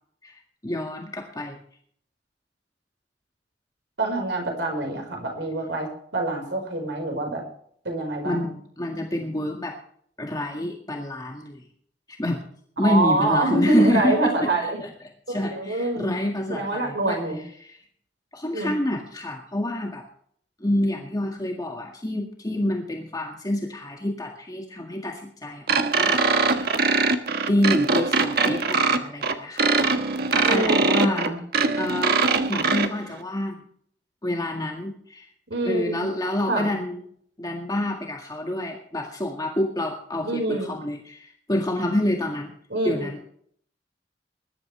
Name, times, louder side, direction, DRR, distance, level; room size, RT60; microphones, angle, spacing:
voice 1, 0.2-1.6 8.2-9.8 10.2-11.6 12.1-12.4 12.8-14.9 15.3-17.2 17.6-17.8 18.3-20.0 20.6-26.6 27.5-29.8 30.3-31.3 31.8-32.2 32.5-33.6 34.2-35.3 35.6-37.0 37.4-42.5 42.8-43.2, left 1 dB, 20° left, 1 dB, 1.9 m, -28 dB
voice 2, 4.0-7.4 7.8-8.5 12.8-14.8 15.4-16.1 16.5-17.4 18.5-18.7 30.4-31.4 35.5-36.1 36.5-36.7 40.2-40.7 42.7-43.1, right 2 dB, 85° right, 2 dB, 4.9 m, -25 dB
sound 1, 25.7-32.9, right 4 dB, 60° right, 1.3 m, -22 dB
21.0 x 12.0 x 3.3 m, 0.62 s
head